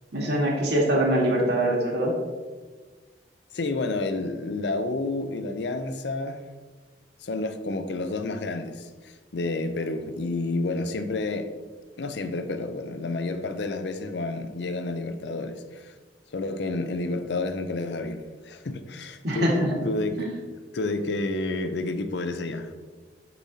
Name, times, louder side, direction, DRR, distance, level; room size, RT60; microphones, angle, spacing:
voice 1, 0.1-2.1 19.2-19.8 20.2-20.3, right 1 dB, 65° right, 1.7 m, -23 dB
voice 2, 3.5-6.4 7.2-11.5 12.0-15.9 16.3-19.5 19.8-20.3 20.7-22.7, left 2 dB, 70° left, 0.5 m, -30 dB
6.8 x 6.2 x 2.8 m
head